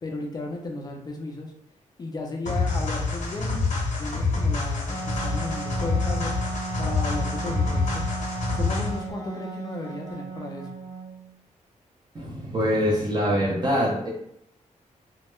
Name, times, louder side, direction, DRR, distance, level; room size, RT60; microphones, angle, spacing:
voice 1, 0.0-1.5 2.0-6.3 6.8-8.0 8.5-10.7, left 2 dB, 30° left, 1 dB, 0.3 m, -35 dB
sound 1, 2.4-9.1, left 3 dB, 65° left, 0.6 m, -27 dB
Wind instrument woodwind instrument, 4.9-11.3, right 3 dB, 50° right, 0.9 m, -35 dB
voice 2, 12.1-14.1, equal, 35° right, -4 dB, 0.5 m, -24 dB
2.1 x 2.0 x 3.0 m, 0.74 s
wide cardioid pair, 160°, 13 cm